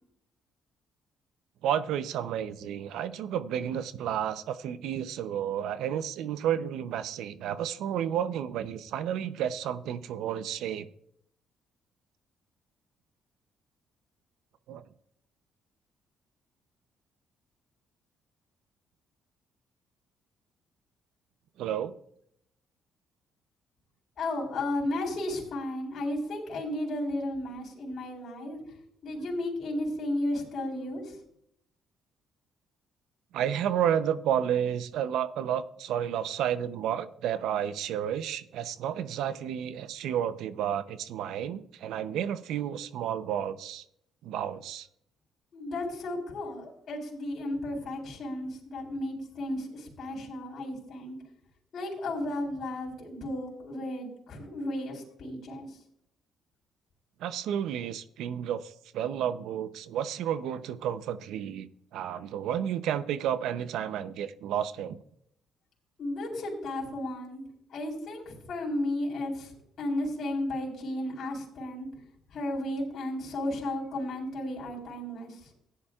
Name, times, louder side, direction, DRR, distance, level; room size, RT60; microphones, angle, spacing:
voice 1, 1.6-10.9 14.7-14.8 21.6-21.9 33.3-43.8 44.2-44.9 57.2-65.0, right 9 dB, 80° right, 13 dB, 0.7 m, -31 dB
voice 2, 24.2-28.6 29.0-31.2 45.5-51.2 51.7-55.8 66.0-67.4 67.7-69.5 69.8-71.9 72.3-75.5, left 1 dB, 55° left, -2 dB, 4.1 m, -34 dB
15.5 x 10.0 x 2.4 m, 0.71 s
cardioid pair, 105°, 0 cm